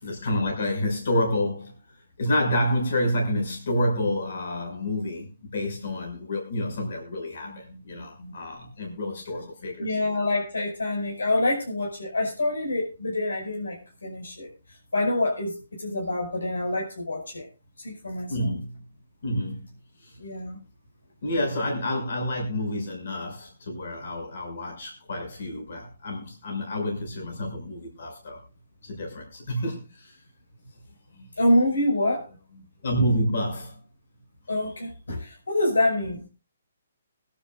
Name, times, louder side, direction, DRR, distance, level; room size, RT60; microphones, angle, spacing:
voice 1, 0.0-1.8 2.2-10.0 18.3-18.9 19.2-20.2 21.2-28.4 28.8-30.2 32.8-33.8 34.7-34.8, left 1 dB, 65° left, 5.9 m, -29 dB
voice 2, 7.4-8.4 8.8-8.9 9.8-14.5 14.9-17.5 17.8-18.5 20.2-20.6 31.4-32.6 34.5-36.3, left 1 dB, 85° left, 5.7 m, -27 dB
22.0 x 12.0 x 2.5 m
hypercardioid pair, 145°, 0 cm